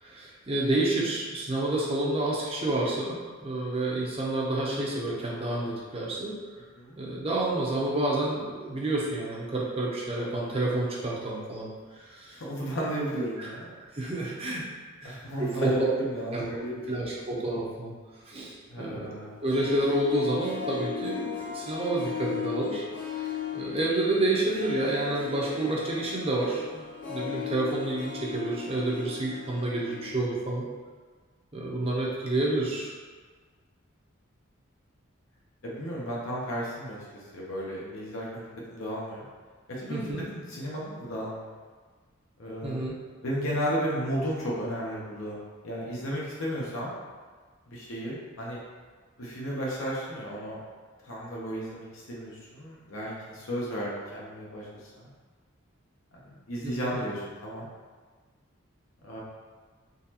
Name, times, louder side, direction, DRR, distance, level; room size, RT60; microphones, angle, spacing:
voice 1, 0.0-6.3 7.0-12.4 13.4-13.5 13.9-14.6 15.0-15.9 16.3-16.5 16.9-17.9 18.2-19.2 19.4-22.8 23.1-30.7 31.5-32.9 39.9-40.2 42.6-43.0 56.6-57.0, right 2 dB, 25° right, -4 dB, 0.7 m, -29 dB
voice 2, 12.3-13.7 15.0-16.9 18.7-19.4 35.6-39.2 39.8-41.5 42.4-42.8 43.2-45.4 45.6-46.9 47.7-48.6 49.2-50.6 51.0-54.7 54.9-55.1 56.2-57.7 59.0-59.2, equal, 70° left, -5 dB, 0.8 m, -34 dB
Harp, 19.3-30.3 30.6-30.7, left 8 dB, 40° left, 0.7 m, -37 dB
3.9 x 3.0 x 2.8 m, 1.5 s
head